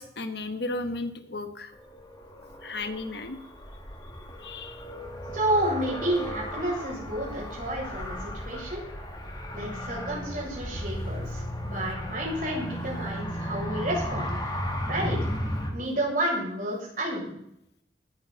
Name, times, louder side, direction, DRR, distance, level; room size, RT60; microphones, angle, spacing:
voice 1, 0.0-1.7 2.6-3.4 4.4-4.8, left 2 dB, 65° left, 8 dB, 1.4 m, -34 dB
Car, 1.7-15.7, equal, 25° left, 2.4 m, -35 dB
voice 2, 5.3-8.8 9.5-14.5 14.9-15.2 15.7-17.4, right 1 dB, 45° right, -4 dB, 7.0 m, -30 dB
19.0 x 10.5 x 4.2 m, 0.74 s
head